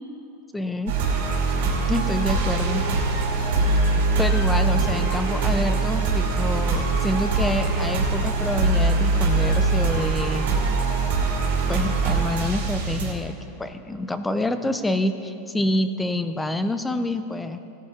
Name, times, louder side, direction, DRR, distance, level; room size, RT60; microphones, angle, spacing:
voice 1, 0.5-0.9 1.9-2.8 4.2-10.4 11.7-13.3 13.6-17.6, left 1 dB, 5° left, 10 dB, 0.3 m, -27 dB
sound 1, 0.9-13.1, right 3 dB, 70° right, 2.5 m, -22 dB
17.0 x 9.2 x 3.7 m, 2.9 s
supercardioid pair, 180°, 0 cm